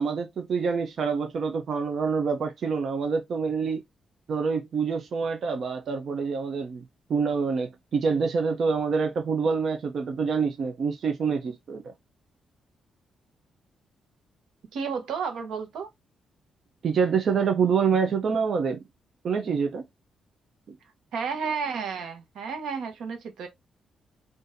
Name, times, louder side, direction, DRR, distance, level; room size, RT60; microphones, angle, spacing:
voice 1, 0.0-3.8 4.3-6.8 7.1-11.9 16.8-18.8 19.2-19.8 20.7-20.8, right 5 dB, 45° right, 0.6 m, -26 dB
voice 2, 14.7-15.9 21.1-23.5, right 6 dB, 85° right, 1.0 m, -32 dB
4.0 x 2.6 x 2.6 m
wide cardioid pair, 175°, 0 cm